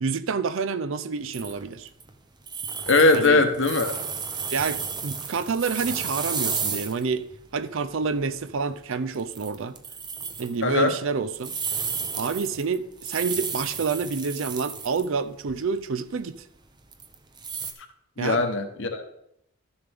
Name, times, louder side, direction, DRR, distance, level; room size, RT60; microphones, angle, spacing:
voice 1, 0.0-1.9 3.1-3.4 4.5-7.2 7.5-9.8 10.4-11.6 12.1-16.4 18.2-18.4, right 5 dB, 60° right, 0.5 m, -28 dB
sound 1, 1.3-2.1 2.5-7.0 7.3-7.4 8.0-8.2 8.5-8.7 9.1-10.5 11.3-15.1 15.4-15.5 16.9-17.7, right 5 dB, 20° right, 0.6 m, -32 dB
voice 2, 2.9-3.9 10.6-10.9 18.2-19.0, left 3 dB, 55° left, 1.0 m, -20 dB
13.0 x 7.1 x 3.5 m
head